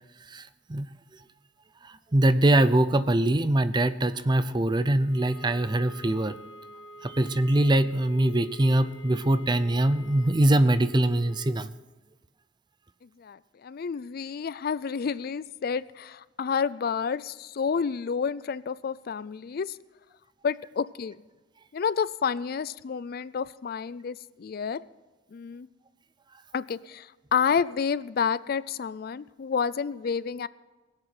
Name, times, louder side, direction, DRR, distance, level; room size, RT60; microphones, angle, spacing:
voice 1, 0.2-0.9 1.8-6.3 7.0-11.7, right 1 dB, 25° right, 13 dB, 0.6 m, -23 dB
sound 1, 4.7-11.6, right 1 dB, 85° left, 2.3 m, -48 dB
voice 2, 13.2-19.8 20.4-21.2 21.7-24.8 25.3-25.7 26.5-30.5, left 6 dB, 55° left, 18 dB, 0.4 m, -29 dB
21.5 x 8.1 x 6.0 m, 1.2 s
head